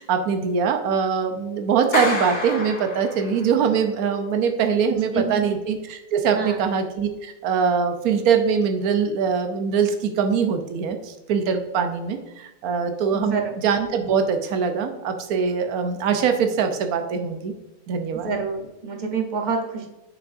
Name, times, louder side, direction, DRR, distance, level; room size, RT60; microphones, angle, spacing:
voice 1, 0.0-17.5 17.9-18.3, right 6 dB, 85° right, 6 dB, 1.2 m, -23 dB
Clapping, 1.9-3.6, left 2 dB, 70° left, 2.3 m, -28 dB
voice 2, 4.9-5.6 6.3-6.7 13.1-13.5 18.1-19.9, right 5 dB, 35° right, 3 dB, 0.9 m, -28 dB
6.6 x 5.9 x 2.6 m, 1.0 s
omnidirectional pair, 1.5 m